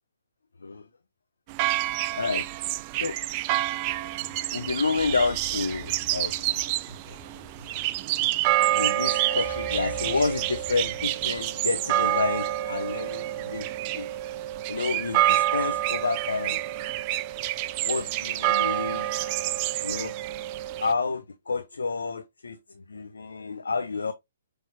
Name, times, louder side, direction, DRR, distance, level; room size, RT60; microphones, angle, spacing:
sound 1, 1.5-20.9, right 14 dB, 35° right, 0.3 m, -28 dB
voice 1, 2.1-2.5 3.0-3.2 3.5-3.7 4.5-6.7 8.4-13.7 13.9-14.1 14.7-16.6 17.8-19.1 19.8-20.1 20.8-24.1, left 4 dB, 75° left, 0.5 m, -29 dB
sound 2, 3.8-13.5, left 2 dB, 30° left, 1.8 m, -47 dB
5.5 x 3.2 x 2.8 m
figure-of-eight pair, 125°, 0 cm